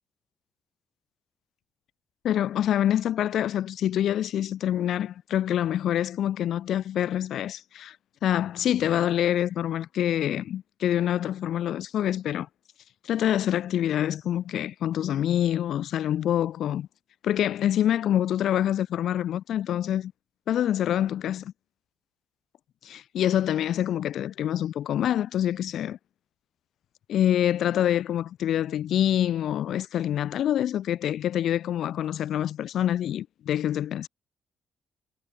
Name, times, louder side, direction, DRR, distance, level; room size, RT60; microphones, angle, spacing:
voice 1, 2.2-8.0 8.2-12.5 13.0-16.9 17.2-20.1 20.5-21.5 22.8-26.0 27.1-34.1, left 11 dB, 70° left, 1.1 m, -26 dB
cardioid pair, 90°, 0 cm